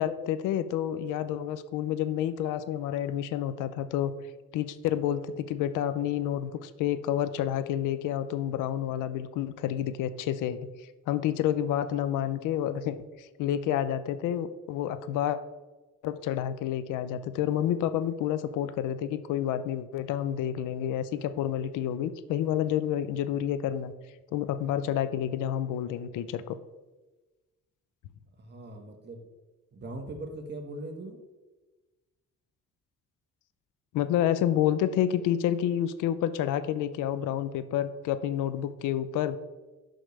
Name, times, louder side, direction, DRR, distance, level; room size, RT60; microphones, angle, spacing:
voice 1, 0.0-4.1 4.5-10.6 11.1-15.4 16.0-23.9 24.3-26.6 33.9-39.4, left 10 dB, 90° left, 13 dB, 0.5 m, -29 dB
voice 2, 28.4-29.3 29.7-31.2, right 2 dB, 35° right, 3 dB, 1.3 m, -40 dB
7.8 x 6.3 x 3.2 m, 1.2 s
cardioid pair, 90°, 30 cm